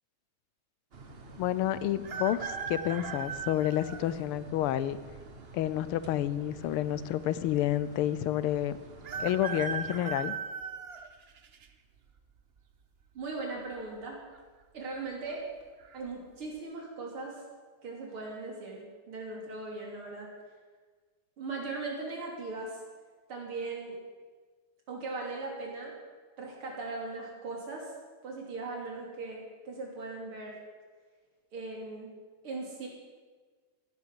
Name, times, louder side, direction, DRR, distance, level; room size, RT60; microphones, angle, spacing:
sound 1, 0.9-10.0, right 3 dB, 35° right, 1.1 m, -49 dB
voice 1, 1.4-5.0 5.5-8.8 9.2-10.3, left 12 dB, 80° left, 15 dB, 1.5 m, -29 dB
sound 2, 2.0-4.1 4.7-4.8 5.9-6.6 6.9-7.0 7.1-7.2 9.0-11.7 12.2-12.6 13.7-14.1 14.3-14.4 15.0-15.3 15.8-16.0, right 6 dB, 90° right, 0.5 m, -38 dB
voice 2, 13.1-14.2 14.7-15.5 15.9-17.4 17.8-20.3 21.4-22.8 23.3-24.0 24.9-26.0 26.4-27.9 28.2-30.6 31.5-32.1 32.4-32.9, right 3 dB, 70° right, -1 dB, 4.0 m, -39 dB
15.0 x 10.5 x 7.6 m, 1.4 s
omnidirectional pair, 2.4 m